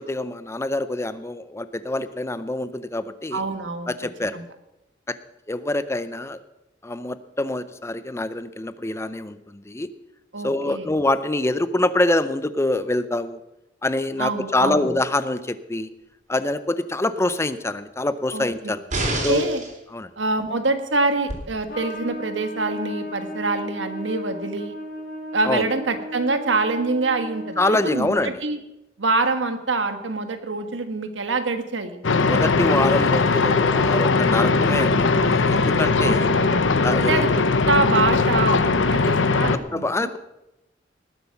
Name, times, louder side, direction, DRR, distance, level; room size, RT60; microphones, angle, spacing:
voice 1, 0.0-3.4 3.9-4.4 5.1-5.2 5.5-6.4 6.8-9.9 10.4-13.4 13.8-15.9 16.3-18.8 19.2-19.5 19.9-20.1 25.4-25.6 27.6-28.4 32.2-36.3 36.8-37.2 39.7-40.2, left 2 dB, 15° left, 13 dB, 0.5 m, -25 dB
voice 2, 3.3-3.9 4.3-4.4 10.3-10.9 14.2-14.9 18.3-18.7 19.3-19.6 20.2-24.8 25.3-28.6 29.0-32.0 36.0-36.5 37.1-40.1, right 3 dB, 85° right, 8 dB, 1.4 m, -25 dB
sound 1, 18.9-19.7 21.3-21.4, right 1 dB, 40° right, 3.5 m, -26 dB
Trumpet, 21.7-28.2, left 1 dB, 50° left, 3.8 m, -35 dB
sound 2, 32.0-39.6, left 3 dB, 90° left, 0.8 m, -19 dB
19.5 x 8.0 x 5.8 m, 0.93 s
head